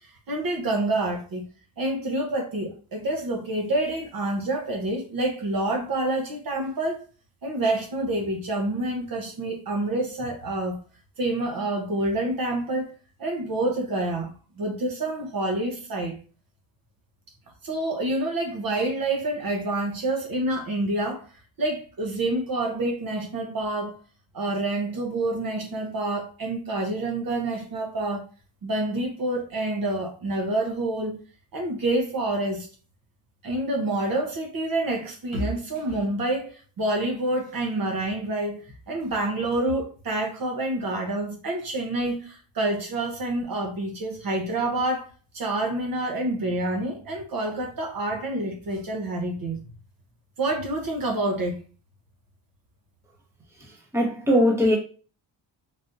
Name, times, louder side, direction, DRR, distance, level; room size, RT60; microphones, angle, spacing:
voice 1, 0.3-1.4 1.8-7.0 7.4-10.8 11.2-16.2 17.6-21.3 21.6-24.0 24.3-28.2 28.6-31.2 31.5-32.7 33.4-49.6 50.4-51.6, right 2 dB, 45° right, 0.9 m, -27 dB
voice 2, 53.9-54.8, equal, 5° right, 0.9 m, -20 dB
3.9 x 2.6 x 2.5 m
cardioid pair, 140°, 49 cm